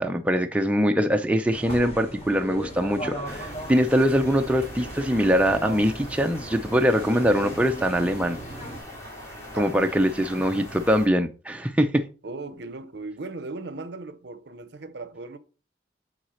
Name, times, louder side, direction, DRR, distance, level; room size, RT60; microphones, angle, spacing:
voice 1, 0.0-8.4 9.5-12.1, equal, 5° right, 0.4 m, -23 dB
sound 1, 1.5-8.8, right 1 dB, 35° left, 2.3 m, -38 dB
sound 2, 3.2-11.1, left 1 dB, 15° left, 2.4 m, -42 dB
voice 2, 9.5-10.0 10.4-10.7 12.2-15.4, right 3 dB, 70° right, 0.7 m, -37 dB
7.7 x 4.0 x 4.3 m
head